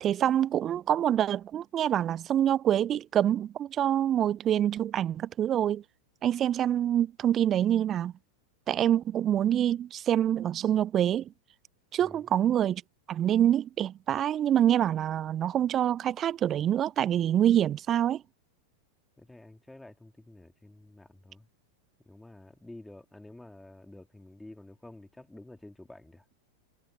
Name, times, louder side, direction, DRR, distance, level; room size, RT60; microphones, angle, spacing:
voice 1, 0.0-5.8 6.2-8.1 8.7-11.3 11.9-12.8 13.1-18.2, right 10 dB, 30° right, 0.5 m, -26 dB
voice 2, 12.0-12.3 19.2-21.5 22.1-26.2, left 1 dB, 5° left, 2.5 m, -50 dB
figure-of-eight pair, 90°, 0 cm